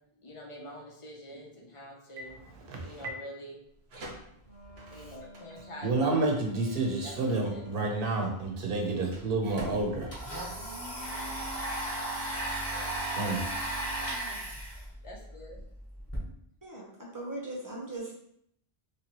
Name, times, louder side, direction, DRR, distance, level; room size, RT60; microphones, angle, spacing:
voice 1, 0.2-2.4 2.8-3.6 4.9-6.4 7.0-7.6 12.7-13.0 15.0-15.6, equal, 35° left, -1 dB, 0.7 m, -46 dB
voice 2, 2.7-3.1 5.8-10.1 13.2-13.5, right 3 dB, 65° right, 0 dB, 1.0 m, -29 dB
sound 1, 3.6-11.2, right 1 dB, 85° right, 1.1 m, -49 dB
Wind instrument woodwind instrument, 4.4-8.3, left 2 dB, 90° left, 1.3 m, -51 dB
Domestic sounds home sounds, 10.0-16.2, right 1 dB, 15° left, 1.1 m, -35 dB
voice 3, 16.6-18.1, right 2 dB, 20° right, -3 dB, 0.8 m, -39 dB
3.1 x 3.0 x 3.0 m, 0.71 s
omnidirectional pair, 1.0 m